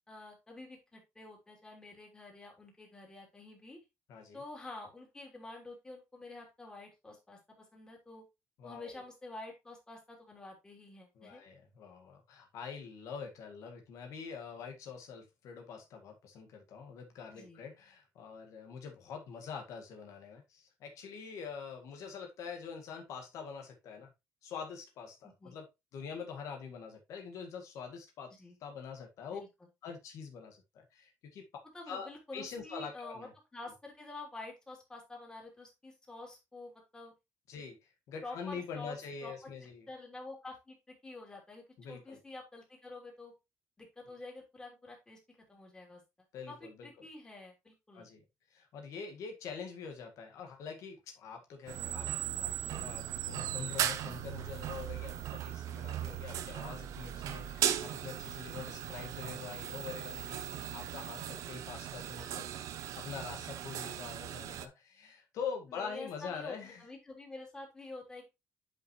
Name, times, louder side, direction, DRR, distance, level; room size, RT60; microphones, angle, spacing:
voice 1, 0.1-3.8 4.3-8.2 8.6-11.4 17.3-17.6 25.4-25.6 28.4-28.6 29.3-29.5 31.7-37.1 38.2-39.0 39.2-39.5 39.9-43.3 43.8-46.0 46.5-48.1 58.5-58.6 65.7-68.3, left 2 dB, 15° left, 0 dB, 3.2 m, -48 dB
voice 2, 8.6-9.0 11.2-24.1 24.4-28.3 28.6-29.4 29.8-31.5 31.9-33.3 37.5-39.9 41.8-42.2 46.3-46.9 47.9-48.2 48.5-62.5 62.8-66.8, left 6 dB, 65° left, 4 dB, 1.8 m, -45 dB
sound 1, 51.7-64.7, right 11 dB, 70° right, 0.9 m, -38 dB
8.7 x 5.6 x 3.1 m, 0.23 s
cardioid pair, 145°, 6 cm